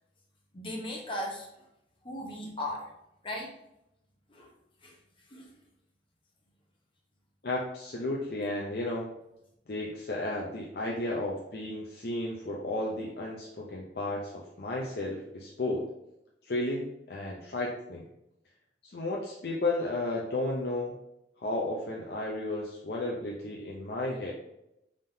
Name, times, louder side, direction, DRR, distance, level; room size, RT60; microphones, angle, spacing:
voice 1, 0.5-1.5 2.0-2.9 3.2-3.5 4.3-4.5 4.8-5.0 5.3-5.5, left 1 dB, 30° left, 0 dB, 0.9 m, -37 dB
voice 2, 7.4-9.2 9.7-15.9 16.4-18.1 18.8-21.0 21.4-24.3, left 2 dB, 60° left, -3 dB, 0.6 m, -33 dB
5.5 x 3.7 x 2.7 m, 0.85 s
head